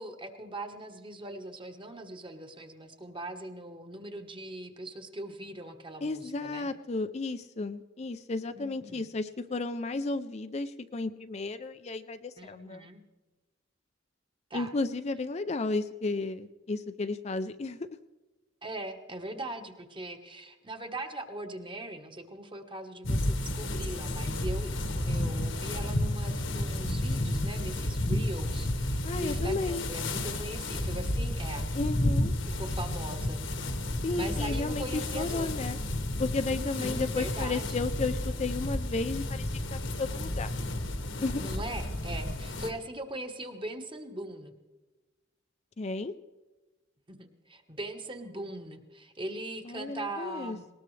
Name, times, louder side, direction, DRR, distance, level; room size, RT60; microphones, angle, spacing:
voice 1, 0.0-6.7 8.5-9.0 12.4-13.0 14.5-14.7 18.6-31.7 32.6-33.4 33.8-35.7 36.5-37.9 41.4-44.5 47.1-50.7, right 1 dB, 25° right, 5 dB, 1.3 m, -40 dB
voice 2, 6.0-12.9 14.5-17.9 29.0-29.8 31.7-32.3 34.0-35.8 36.2-40.5 41.2-41.5 45.8-46.1 49.7-50.6, left 3 dB, 35° left, 9 dB, 0.5 m, -33 dB
sound 1, 23.0-42.7, left 1 dB, 75° left, 1.6 m, -32 dB
19.5 x 19.0 x 3.3 m, 1.2 s
head